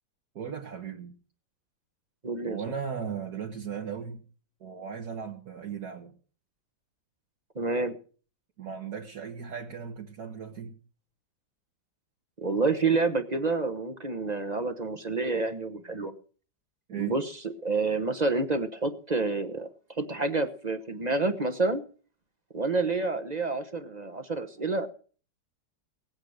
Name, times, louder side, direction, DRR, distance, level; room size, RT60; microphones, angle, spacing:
voice 1, 0.4-1.1 2.4-4.2 4.6-6.1 8.6-10.8 16.9-17.1, right 7 dB, 60° right, 0 dB, 2.0 m, -37 dB
voice 2, 2.2-2.6 7.5-8.0 12.4-16.1 17.0-21.8 22.5-24.9, right 3 dB, 30° right, 9 dB, 0.9 m, -28 dB
18.5 x 8.7 x 6.5 m, 0.41 s
omnidirectional pair, 1.9 m